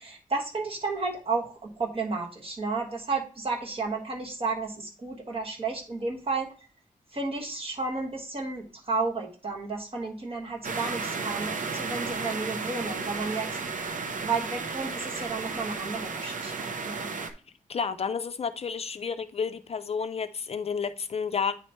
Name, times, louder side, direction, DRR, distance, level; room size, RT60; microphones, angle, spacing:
voice 1, 0.0-6.5 7.1-13.9 14.2-17.1, right 4 dB, 45° right, 1.4 m, -32 dB
sound 1, 10.6-17.3, right 4 dB, 65° right, 0.7 m, -33 dB
voice 2, 17.7-21.5, left 6 dB, 45° left, 0.4 m, -31 dB
9.0 x 3.1 x 4.2 m
wide cardioid pair, 170°, 14 cm